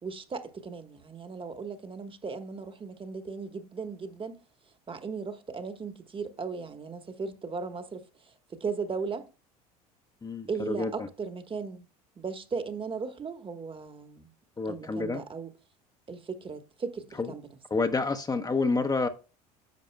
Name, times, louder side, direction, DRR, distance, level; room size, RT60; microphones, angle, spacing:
voice 1, 0.0-4.4 4.9-8.0 8.5-9.3 10.5-11.9 12.2-14.3 14.6-15.5 16.1-17.5, right 5 dB, 25° right, 1.3 m, -37 dB
voice 2, 10.2-10.9 14.6-15.2 17.2-17.3 17.7-19.1, left 3 dB, 20° left, 0.8 m, -28 dB
10.5 x 6.7 x 2.2 m
hypercardioid pair, 75°, 19 cm